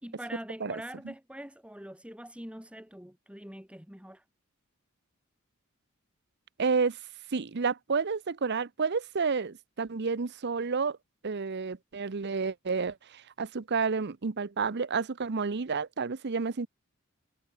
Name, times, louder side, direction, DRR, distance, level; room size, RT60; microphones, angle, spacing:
voice 1, 0.0-4.2, right 1 dB, 5° right, 3.4 m, -44 dB
voice 2, 0.6-1.1 6.6-7.0 7.3-11.0 11.2-16.7, right 5 dB, 55° right, 0.7 m, -30 dB
head